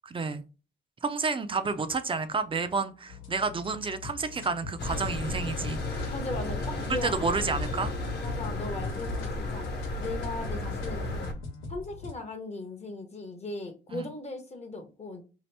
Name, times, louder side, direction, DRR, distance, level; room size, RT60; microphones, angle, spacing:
voice 1, 0.0-0.4 1.0-6.1 6.9-7.9 13.9-14.0, right 4 dB, 25° right, 0.4 m, -30 dB
sound 1, 3.1-12.1, left 4 dB, 90° left, 1.1 m, -43 dB
sound 2, 4.8-11.3, left 2 dB, 55° left, 1.0 m, -33 dB
voice 2, 6.1-7.4 8.2-9.6 10.0-11.2 11.7-15.2, left 2 dB, 35° left, 0.7 m, -38 dB
2.8 x 2.5 x 3.2 m
cardioid pair, 90°, 20 cm